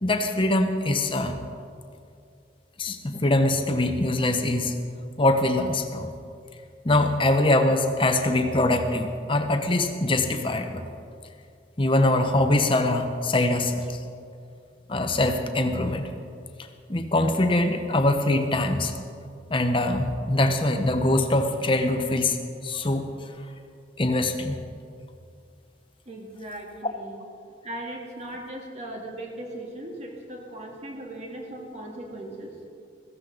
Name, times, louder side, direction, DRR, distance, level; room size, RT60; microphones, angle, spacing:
voice 1, 0.0-1.4 2.8-4.7 5.2-6.1 6.8-10.8 11.8-13.8 14.9-16.0 16.9-18.9 19.5-22.4 22.6-23.1 24.0-24.6, left 2 dB, 30° left, 6 dB, 1.0 m, -23 dB
voice 2, 26.1-27.2 27.6-32.6, right 1 dB, 40° right, 0 dB, 2.0 m, -38 dB
15.5 x 15.0 x 4.0 m, 2.4 s
head